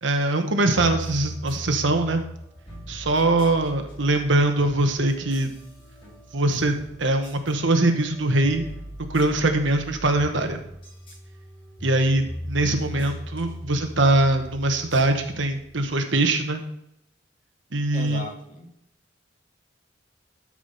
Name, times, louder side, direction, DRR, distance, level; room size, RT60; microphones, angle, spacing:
voice 1, 0.0-2.2 2.9-5.5 6.3-8.7 9.1-10.6 11.8-16.6 17.7-18.2, right 2 dB, 75° right, 6 dB, 1.3 m, -22 dB
sound 1, 0.8-16.0, equal, 30° left, 4.2 m, -39 dB
voice 2, 12.6-13.1 17.9-18.7, left 1 dB, 45° left, -1 dB, 2.4 m, -38 dB
12.5 x 5.0 x 5.5 m, 0.77 s
head